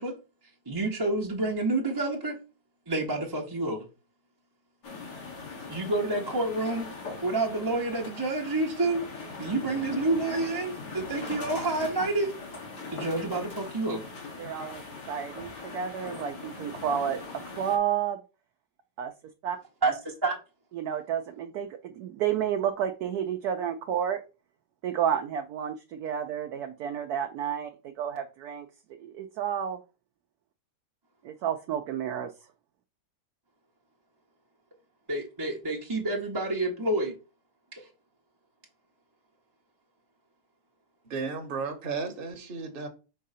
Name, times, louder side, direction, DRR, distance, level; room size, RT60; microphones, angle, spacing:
voice 1, 0.0-2.4 2.9-3.9 5.7-6.9 7.2-9.0 9.4-12.3 12.9-14.1 19.8-20.4 35.1-37.1 37.7-37.9, right 2 dB, 20° right, 0.6 m, -29 dB
sound 1, 4.8-17.8, left 3 dB, 75° left, 2.4 m, -40 dB
voice 2, 14.4-17.2 17.6-18.2 19.0-19.1 19.4-19.6 20.8-24.2 24.8-27.7 28.0-28.7 29.0-29.8 31.2-32.3, right 9 dB, 70° right, 1.1 m, -31 dB
voice 3, 41.1-42.9, right 4 dB, 40° right, 1.0 m, -34 dB
4.6 x 3.7 x 5.4 m
omnidirectional pair, 1.8 m